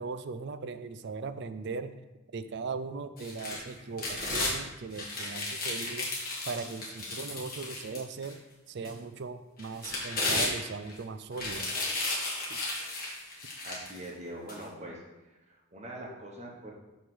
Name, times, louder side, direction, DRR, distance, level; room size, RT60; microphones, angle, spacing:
voice 1, 0.0-1.9 2.3-6.1 6.5-8.4 8.7-11.7 12.5-12.6, right 4 dB, 55° right, 11 dB, 0.4 m, -38 dB
sound 1, 3.2-4.5 4.9-8.3 8.8-8.9 9.6-10.9 11.3-14.0 14.5-14.6, left 2 dB, 45° left, 1.8 m, -34 dB
voice 2, 13.6-15.0 15.3-16.7, right 1 dB, 30° right, -1 dB, 1.1 m, -43 dB
7.9 x 3.3 x 6.0 m, 1.1 s
head